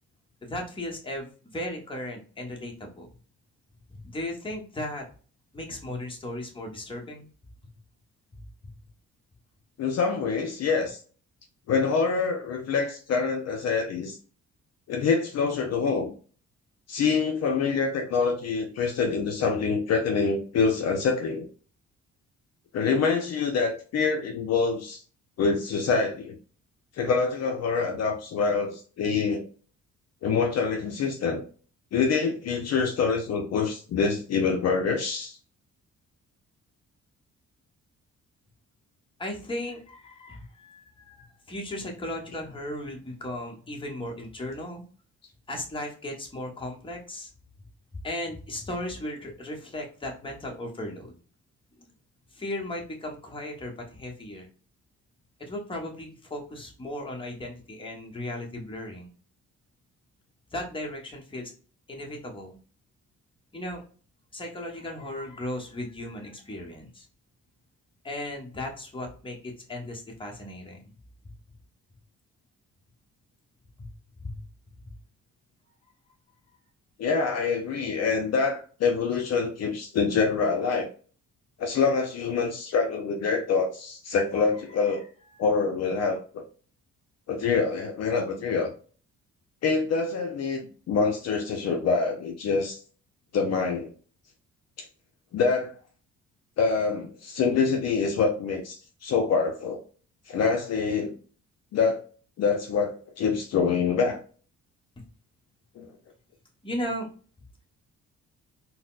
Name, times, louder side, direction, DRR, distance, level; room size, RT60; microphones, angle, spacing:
voice 1, 0.4-3.1 3.9-5.1 5.5-7.3 8.3-8.4 39.2-44.8 45.5-47.3 48.0-51.1 51.8-51.9 52.3-54.5 55.4-59.1 60.5-61.5 61.9-62.6 63.5-63.8 64.3-67.1 68.0-70.8 73.8-73.9 74.2-74.4 84.9-85.0 105.0-105.1 106.6-107.1, left 1 dB, 15° left, 0 dB, 1.0 m, -36 dB
voice 2, 9.8-11.0 11.7-14.2 14.9-16.1 16.9-21.5 22.7-25.0 25.4-26.3 27.0-29.4 30.2-31.4 31.9-35.4 77.0-80.9 81.6-85.0 85.4-86.4 87.3-88.7 89.6-90.6 90.9-92.8 93.3-93.9 94.8-94.9 95.3-95.7 96.6-99.8 100.3-101.1 101.7-102.0 102.4-104.2 105.8-105.9, left 5 dB, 55° left, 4 dB, 0.5 m, -25 dB
4.0 x 2.1 x 2.4 m, 0.40 s
cardioid pair, 90°, 30 cm